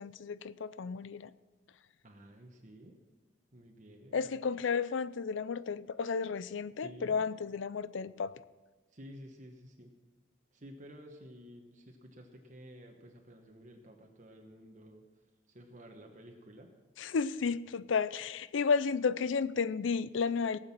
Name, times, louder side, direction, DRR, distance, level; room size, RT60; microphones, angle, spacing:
voice 1, 0.0-1.3 4.1-8.4 17.0-20.6, left 5 dB, 85° left, 0.5 m, -32 dB
voice 2, 2.0-2.9 3.5-4.3 6.8-7.2 8.9-9.9 10.5-15.0 15.5-16.7, equal, 40° right, 1.2 m, -52 dB
18.0 x 7.7 x 6.0 m
head